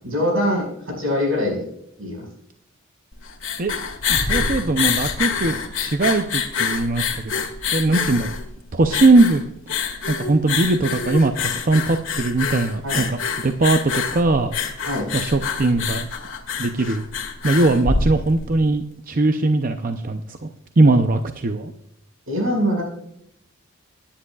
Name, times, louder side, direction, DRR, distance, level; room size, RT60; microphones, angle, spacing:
voice 1, 0.0-1.6 2.0-2.3 5.4-5.5 12.8-13.0 14.8-15.1 22.3-22.8, equal, 80° right, 1 dB, 5.2 m, -23 dB
sound 1, 3.1-18.6, left 5 dB, 70° left, 1.8 m, -26 dB
voice 2, 4.1-7.5 7.7-8.3 8.7-9.4 10.1-13.2 13.4-14.5 15.1-16.1 16.6-17.0 17.4-20.5 20.8-21.7, right 2 dB, 40° right, 7 dB, 0.6 m, -20 dB
18.0 x 10.0 x 2.4 m, 0.75 s
head